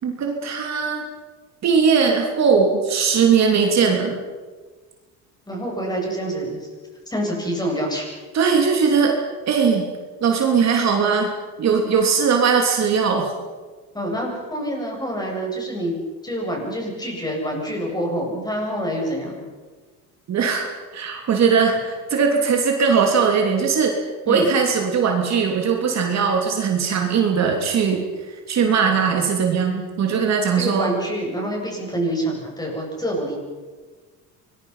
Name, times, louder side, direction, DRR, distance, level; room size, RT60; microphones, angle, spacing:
voice 1, 0.0-1.1 1.6-4.2 8.3-9.2 9.5-9.9 10.2-11.3 11.6-13.3 20.3-23.9 24.3-30.9, right 6 dB, 45° right, 2 dB, 3.2 m, -19 dB
voice 2, 5.5-6.7 7.1-8.1 13.9-16.0 16.2-19.4 24.2-24.5 30.5-33.4, right 1 dB, 10° left, -1 dB, 7.9 m, -26 dB
25.5 x 21.0 x 5.8 m, 1.4 s
cardioid pair, 120°, 36 cm